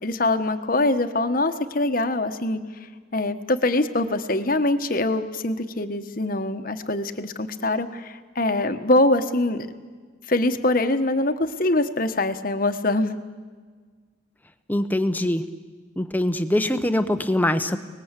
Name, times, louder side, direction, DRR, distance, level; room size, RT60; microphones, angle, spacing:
voice 1, 0.0-2.6 3.1-9.7 10.3-13.2, left 2 dB, 45° left, 9 dB, 1.2 m, -23 dB
voice 2, 14.7-15.4 16.0-17.8, left 1 dB, 10° left, 10 dB, 0.9 m, -23 dB
29.0 x 20.0 x 8.2 m, 1.5 s
head